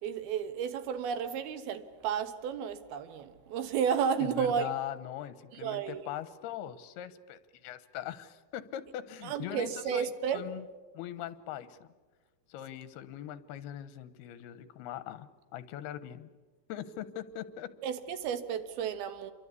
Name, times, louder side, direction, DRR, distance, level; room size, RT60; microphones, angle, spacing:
voice 1, 0.0-4.7 5.6-6.0 9.2-10.4 17.8-19.3, right 7 dB, 75° right, 10 dB, 3.2 m, -32 dB
voice 2, 4.2-10.7 10.9-11.9 12.5-16.3 16.7-17.7, left 11 dB, 85° left, 14 dB, 3.1 m, -41 dB
28.5 x 23.5 x 8.3 m, 1.3 s
omnidirectional pair, 4.5 m